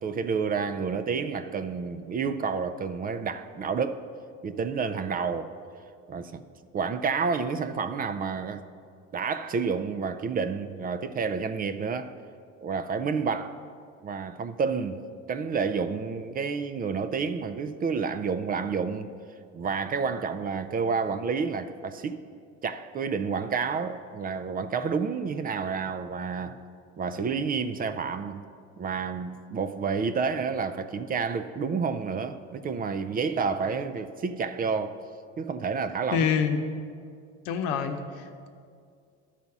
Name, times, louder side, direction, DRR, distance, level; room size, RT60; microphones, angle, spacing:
voice 1, 0.0-4.0 4.4-5.5 6.1-6.4 6.7-8.6 9.1-12.1 12.6-13.6 14.0-15.0 15.3-19.1 19.5-22.2 22.6-26.6 27.0-28.4 28.8-35.0 35.4-36.3, right 5 dB, 30° right, 0.4 m, -29 dB
voice 2, 36.1-36.6 37.4-38.5, left 6 dB, 90° left, 0.9 m, -27 dB
12.0 x 4.2 x 5.9 m
cardioid pair, 110°, 31 cm